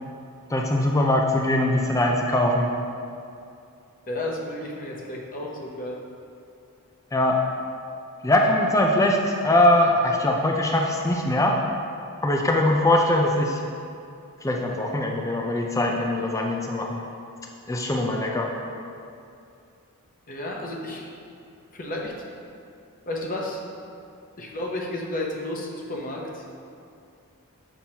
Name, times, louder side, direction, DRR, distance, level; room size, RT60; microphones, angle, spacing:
voice 1, 0.5-2.7 7.1-7.4 8.2-11.6 12.2-13.6 14.4-17.0 17.7-18.5, left 1 dB, 15° left, 1 dB, 0.4 m, -22 dB
voice 2, 4.1-6.0 20.3-21.1 21.7-22.3 23.1-23.6 24.4-26.5, left 1 dB, 40° left, -1 dB, 0.8 m, -32 dB
7.0 x 5.9 x 2.8 m, 2.5 s
head